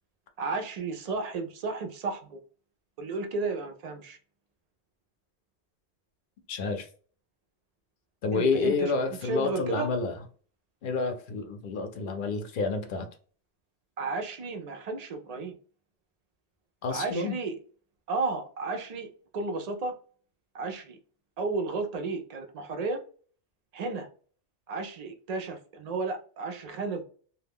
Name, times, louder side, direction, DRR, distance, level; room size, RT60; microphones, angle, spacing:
voice 1, 0.4-2.4 3.0-4.2 8.3-8.9 9.2-9.9 14.0-15.6 16.9-17.6 18.1-19.1 19.3-20.0 20.5-21.0 21.4-23.0 23.7-24.1 24.7-27.0, right 3 dB, 60° right, 0.4 m, -33 dB
voice 2, 6.5-6.9 8.2-10.1 10.8-13.1 16.8-17.4, left 4 dB, 60° left, 0.6 m, -29 dB
2.2 x 2.1 x 3.4 m
omnidirectional pair, 1.2 m